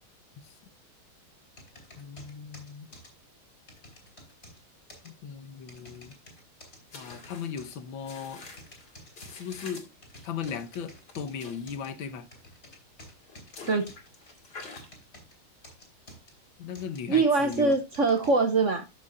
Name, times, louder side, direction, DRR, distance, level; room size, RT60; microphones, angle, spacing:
sound 1, 1.6-3.1 3.7-4.6 4.9-5.1 5.7-6.8 7.1-7.8 8.4-9.7 10.0-11.3 11.7-11.9 12.3-13.5 13.9-15.3 15.6-16.3 16.7-17.0 17.5-18.3, left 1 dB, 30° left, 4.3 m, -50 dB
voice 1, 2.0-2.9 5.0-6.2 6.9-8.5 9.3-9.9 10.3-12.3 16.6-17.8, left 7 dB, 70° left, 1.8 m, -37 dB
sound 2, 6.9-11.9 12.3-12.4 13.1-14.9, left 3 dB, 50° left, 3.1 m, -47 dB
voice 2, 17.1-18.8, right 3 dB, 50° right, 0.9 m, -23 dB
14.0 x 6.8 x 2.6 m
omnidirectional pair, 2.3 m